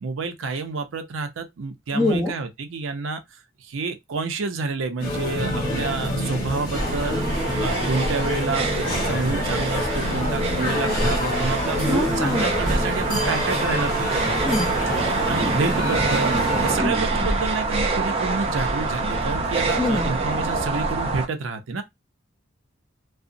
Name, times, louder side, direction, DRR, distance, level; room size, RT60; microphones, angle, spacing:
voice 1, 0.0-7.2 7.6-14.1 15.2-21.8, right 4 dB, 80° right, 0.5 m, -29 dB
voice 2, 1.9-2.3 11.8-12.6 14.4-14.7 16.8-17.3 19.8-20.1, left 2 dB, ahead, 0.8 m, -25 dB
sound 1, 5.0-16.8, left 1 dB, 45° left, 1.3 m, -27 dB
sound 2, 6.7-21.2, right 3 dB, 30° right, 0.6 m, -26 dB
2.8 x 2.0 x 2.5 m
head